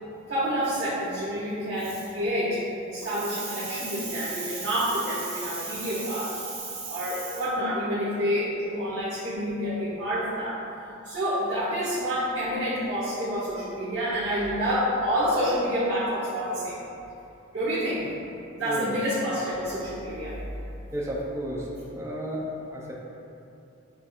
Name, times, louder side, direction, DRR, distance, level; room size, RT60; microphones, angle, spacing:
voice 1, 0.3-10.6 11.0-16.7 17.5-18.1 18.6-20.4, equal, 70° right, -13 dB, 1.3 m, -28 dB
voice 2, 20.9-22.4 22.7-22.9, right 1 dB, 15° right, -4 dB, 0.6 m, -32 dB
7.5 x 2.7 x 2.4 m, 2.8 s
head